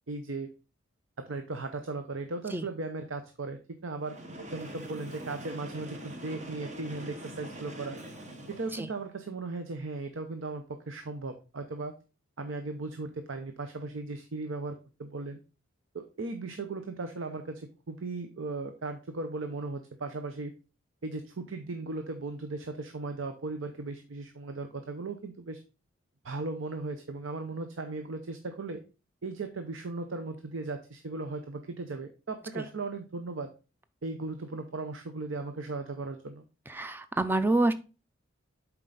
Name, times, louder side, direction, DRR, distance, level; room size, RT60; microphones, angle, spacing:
voice 1, 0.1-0.5 1.2-4.2 4.5-8.0 8.5-12.0 12.4-15.4 15.9-20.5 21.0-25.6 26.2-28.8 29.2-33.5 34.0-36.4, right 3 dB, 80° right, 7 dB, 0.7 m, -37 dB
Train, 4.0-9.0, right 1 dB, 35° right, 1.0 m, -43 dB
voice 2, 36.7-37.7, right 2 dB, 10° right, 11 dB, 0.4 m, -27 dB
7.5 x 4.6 x 3.9 m, 0.33 s
head